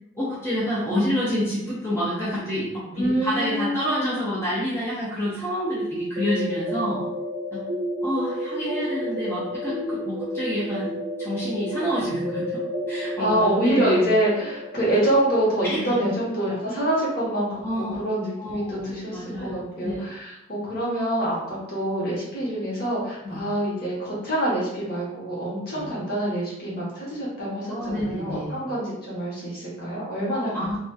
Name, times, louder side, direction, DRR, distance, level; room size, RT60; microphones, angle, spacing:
voice 1, 0.2-7.0 7.5-7.6 8.0-10.9 11.2-12.6 12.9-14.1 15.6-16.0 17.6-18.0 18.4-20.0 23.2-23.4 25.6-25.9 27.7-28.6 30.3-30.8, equal, 10° left, -8 dB, 0.4 m, -28 dB
voice 2, 3.0-4.1 13.2-30.8, right 1 dB, 50° left, -7 dB, 1.0 m, -26 dB
sound 1, 5.7-17.4, equal, 70° right, 0.4 m, -31 dB
2.7 x 2.3 x 2.2 m, 0.86 s
head